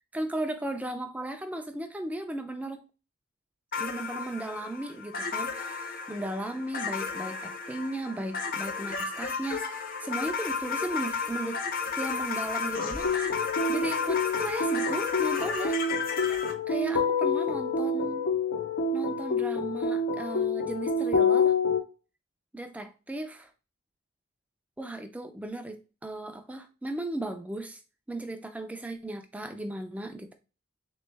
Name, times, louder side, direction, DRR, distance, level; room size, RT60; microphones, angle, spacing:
voice 1, 0.1-2.8 3.8-11.6 11.9-15.8 16.7-18.3 18.9-21.6 22.5-23.5 24.8-27.8 28.1-30.3, right 1 dB, 5° right, 0.3 m, -36 dB
sound 1, 3.7-16.5, left 5 dB, 40° left, 0.6 m, -33 dB
sound 2, 12.8-21.8, left 4 dB, 80° left, 0.7 m, -27 dB
3.7 x 3.0 x 3.3 m
head